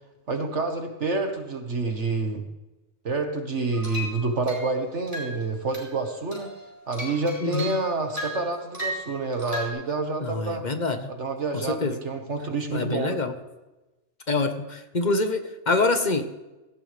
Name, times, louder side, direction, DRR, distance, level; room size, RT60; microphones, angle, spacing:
voice 1, 0.3-2.4 3.0-6.5 6.9-10.6 11.1-13.2, right 3 dB, 65° right, 4 dB, 1.8 m, -28 dB
sound 1, 3.7-4.7 5.1-5.4 5.7-6.0 6.3-9.7, equal, 30° right, 5.0 m, -36 dB
voice 2, 7.4-7.7 10.2-11.1 11.5-11.9 12.7-13.3 14.3-16.3, left 3 dB, 35° left, 7 dB, 1.4 m, -25 dB
18.0 x 15.5 x 3.4 m, 1.1 s
omnidirectional pair, 1.3 m